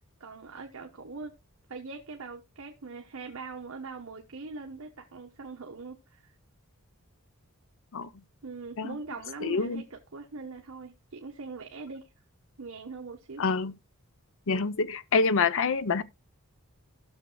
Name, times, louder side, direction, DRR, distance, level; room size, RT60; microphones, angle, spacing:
voice 1, 0.2-1.4 1.7-6.3 8.4-12.1 12.6-13.4, right 3 dB, 65° right, 1.1 m, -42 dB
voice 2, 9.4-9.8 13.4-13.7 14.5-16.0, left 4 dB, 60° left, 0.6 m, -26 dB
16.0 x 6.5 x 2.2 m
head